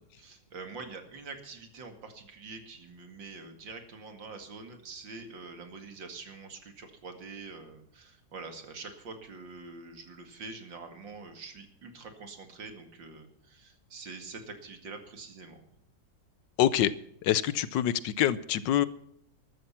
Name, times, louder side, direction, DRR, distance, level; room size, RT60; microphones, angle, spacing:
voice 1, 0.2-15.6, right 4 dB, 90° right, 6 dB, 3.0 m, -45 dB
voice 2, 16.6-16.9 17.2-18.9, left 11 dB, 80° left, 17 dB, 1.4 m, -25 dB
13.5 x 13.0 x 5.8 m, 0.70 s
omnidirectional pair, 2.0 m